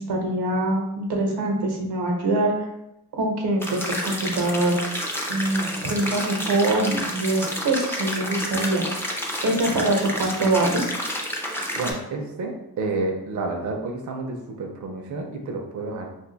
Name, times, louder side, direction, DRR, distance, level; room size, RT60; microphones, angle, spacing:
voice 1, 0.0-2.5 3.2-4.8 5.3-10.8, right 2 dB, 90° right, 1 dB, 0.8 m, -24 dB
sound 1, 3.6-11.9, equal, 5° left, 0.3 m, -30 dB
voice 2, 11.7-16.1, right 3 dB, 50° right, 1 dB, 0.5 m, -30 dB
2.5 x 2.3 x 3.8 m, 0.87 s
wide cardioid pair, 145°, 39 cm